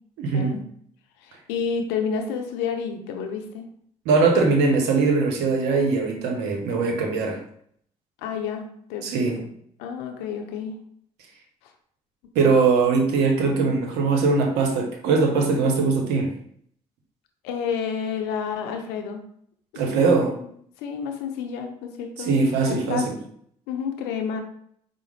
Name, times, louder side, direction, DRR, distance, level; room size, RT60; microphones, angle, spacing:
voice 1, 0.2-0.5 4.1-7.4 9.0-9.4 12.3-16.3 19.8-20.4 22.2-23.2, right 4 dB, 75° right, 3 dB, 0.8 m, -21 dB
voice 2, 1.2-3.7 8.2-9.1 9.4-9.5 9.8-10.8 11.6-11.7 17.4-19.2 19.9-20.1 20.8-22.4 22.6-23.1 23.7-24.4, left 6 dB, 75° left, 5 dB, 0.6 m, -30 dB
4.9 x 2.0 x 3.2 m, 0.66 s
hypercardioid pair, 50°, 17 cm